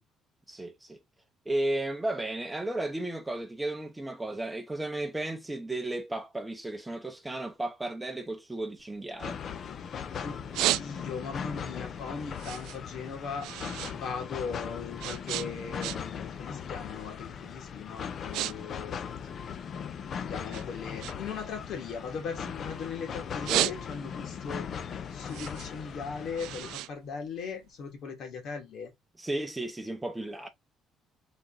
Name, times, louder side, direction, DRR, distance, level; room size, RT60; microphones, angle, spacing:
voice 1, 0.5-1.0 1.5-9.4 23.5-23.7 29.2-30.5, right 1 dB, 10° right, 0.7 m, -34 dB
sound 1, 8.8-9.9 10.3-11.3 11.8-14.0 14.2-16.3 16.6-16.9 17.5-17.7 18.0-18.5 18.8-20.0 20.5-22.8 23.2-24.3 24.7-27.8, right 15 dB, 85° right, 0.3 m, -34 dB
sound 2, 9.2-26.7, left 7 dB, 45° left, 0.5 m, -39 dB
voice 2, 10.2-19.3 20.1-24.7 25.1-28.9, left 5 dB, 60° left, 1.8 m, -39 dB
3.9 x 2.9 x 3.8 m
cardioid pair, 130°, 0 cm